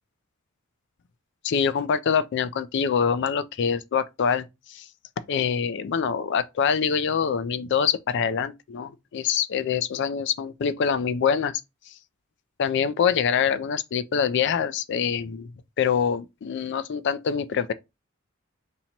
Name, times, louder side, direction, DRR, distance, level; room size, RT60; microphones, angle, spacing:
voice 1, 1.4-4.9 5.3-11.5 12.6-15.5 15.8-17.7, left 7 dB, 55° left, 0.4 m, -25 dB
2.8 x 2.7 x 4.3 m
head